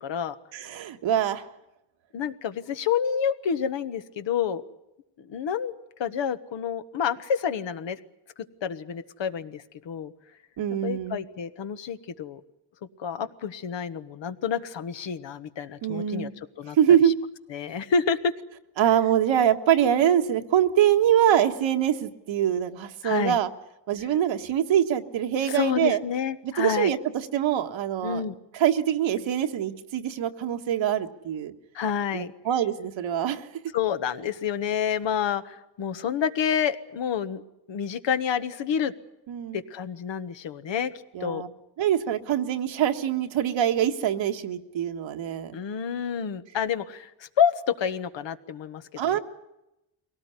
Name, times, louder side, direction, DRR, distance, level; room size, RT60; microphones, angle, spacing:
voice 1, 0.0-0.4 2.1-4.6 5.3-5.7 6.0-8.0 8.6-10.1 10.8-12.4 13.0-16.3 16.6-16.8 17.5-18.3 23.0-23.4 25.5-26.9 28.0-28.3 31.7-32.3 33.7-37.4 37.7-38.9 39.5-40.9 41.2-41.4 45.5-48.8 49.1-49.2, left 7 dB, 70° left, 10 dB, 1.5 m, -28 dB
voice 2, 0.5-1.5 10.6-11.2 15.8-16.3 16.7-17.1 18.8-23.5 23.9-26.0 26.4-28.2 28.5-31.5 32.1-33.5 39.3-39.6 41.1-41.5 41.8-45.5 49.0-49.2, right 10 dB, 80° right, 6 dB, 1.6 m, -24 dB
22.5 x 18.0 x 9.8 m, 0.89 s
cardioid pair, 75°, 45 cm